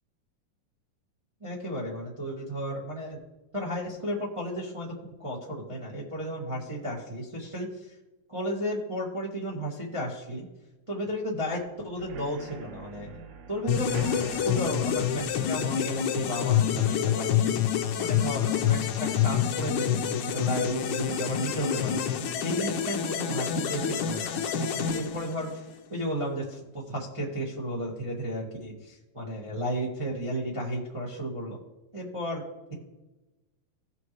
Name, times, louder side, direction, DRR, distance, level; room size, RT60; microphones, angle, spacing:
voice 1, 1.4-3.2 3.5-4.9 5.2-7.9 8.3-10.5 10.9-13.1 13.5-22.0 22.4-25.6 25.9-31.6 31.9-32.7, equal, 15° right, -5 dB, 1.1 m, -33 dB
sound 1, 12.0-19.6 20.0-20.3 20.6-20.7 21.1-21.2, right 5 dB, 90° right, 1.5 m, -46 dB
sound 2, 13.7-25.8, left 9 dB, 75° left, 1.8 m, -27 dB
18.0 x 6.1 x 3.1 m, 1.0 s
omnidirectional pair, 4.1 m